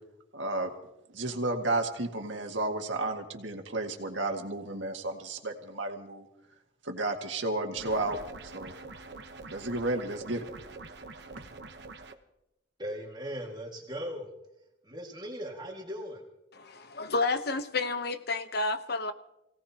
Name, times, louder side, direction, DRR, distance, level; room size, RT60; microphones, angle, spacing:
voice 1, 0.3-0.7 1.1-6.3 6.8-8.2 8.5-8.7 9.5-10.4, right 2 dB, 85° right, 3 dB, 1.9 m, -32 dB
sound 1, 7.8-12.1, right 3 dB, 60° right, 1.0 m, -45 dB
voice 2, 12.8-14.3 14.8-16.2, equal, 25° right, 0 dB, 2.0 m, -38 dB
voice 3, 16.6-19.1, left 3 dB, 55° left, 10 dB, 0.9 m, -30 dB
27.5 x 17.0 x 2.9 m, 0.89 s
head